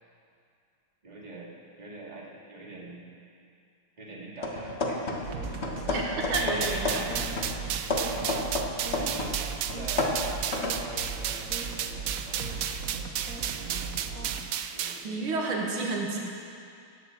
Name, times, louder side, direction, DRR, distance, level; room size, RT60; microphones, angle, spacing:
voice 1, 1.0-3.0 4.0-5.9 6.6-6.7 7.9-8.5 9.0-9.4 9.7-12.5 13.5-14.4 14.7-15.7, right 2 dB, 20° right, -4 dB, 2.4 m, -45 dB
sound 1, 4.4-5.4 5.6-9.4 9.7-10.9, left 2 dB, 35° left, 1.5 m, -31 dB
sound 2, 5.2-14.4, right 4 dB, 45° right, 1.5 m, -38 dB
voice 2, 5.9-7.0 15.0-16.2, right 3 dB, 85° right, -1 dB, 2.6 m, -30 dB
sound 3, 6.3-15.0, right 9 dB, 70° right, 1.2 m, -33 dB
18.0 x 8.6 x 7.6 m, 2.4 s
omnidirectional pair, 2.2 m